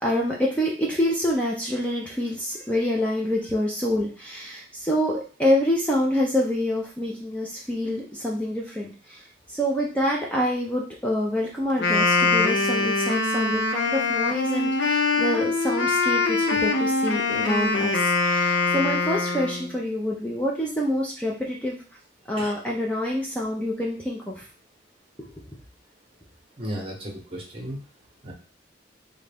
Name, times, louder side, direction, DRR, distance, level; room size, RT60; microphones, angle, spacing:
voice 1, 0.0-9.2 9.5-21.8 22.3-24.4 25.2-25.3, left 1 dB, 5° left, -3 dB, 0.5 m, -26 dB
Wind instrument woodwind instrument, 11.7-19.7, left 3 dB, 65° left, 0.5 m, -23 dB
voice 2, 26.6-27.8 28.2-28.3, equal, 30° right, 0 dB, 0.9 m, -34 dB
3.7 x 2.2 x 3.4 m, 0.36 s
head